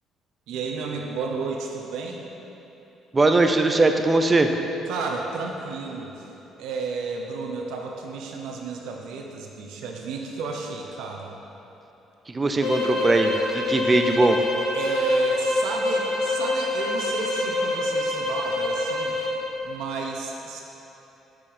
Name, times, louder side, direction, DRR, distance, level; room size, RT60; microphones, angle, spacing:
voice 1, 0.5-2.2 4.9-6.3 6.6-11.3 14.7-19.2 19.6-20.6, right 3 dB, 85° right, 0 dB, 0.7 m, -31 dB
voice 2, 3.1-4.5 12.3-14.4, right 2 dB, 20° right, 5 dB, 0.4 m, -20 dB
sound 1, 12.6-19.4, left 2 dB, 90° left, 1.2 m, -26 dB
6.3 x 6.0 x 3.4 m, 3.0 s
cardioid pair, 120°, 0 cm